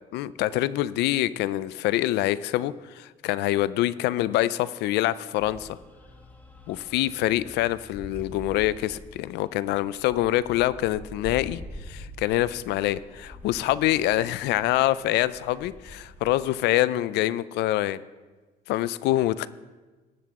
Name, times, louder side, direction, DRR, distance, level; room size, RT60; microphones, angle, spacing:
voice 1, 0.1-5.8 6.7-11.6 11.9-18.0 18.7-19.5, left 15 dB, 85° left, 17 dB, 0.4 m, -25 dB
sound 1, 5.4-16.6, equal, 10° left, 1.8 m, -45 dB
18.5 x 7.6 x 3.7 m, 1.3 s
cardioid pair, 110°, 17 cm